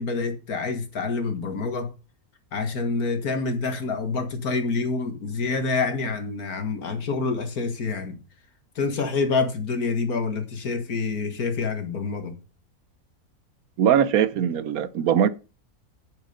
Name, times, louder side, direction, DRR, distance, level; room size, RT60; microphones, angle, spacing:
voice 1, 0.0-1.9 2.5-8.2 8.8-12.4, left 4 dB, 80° left, 2.3 m, -27 dB
voice 2, 13.8-15.3, right 9 dB, 80° right, 1.2 m, -21 dB
9.8 x 7.4 x 5.4 m
omnidirectional pair, 1.5 m